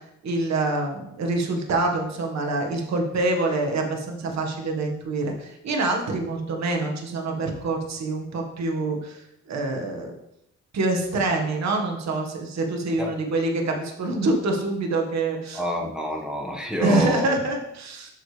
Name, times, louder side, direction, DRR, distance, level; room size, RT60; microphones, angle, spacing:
voice 1, 0.0-10.1 10.7-15.6 16.8-18.1, right 2 dB, 60° right, 2 dB, 1.7 m, -26 dB
voice 2, 15.5-17.4, left 1 dB, 5° right, -1 dB, 1.6 m, -28 dB
7.6 x 6.9 x 3.4 m, 0.80 s
cardioid pair, 90°, 30 cm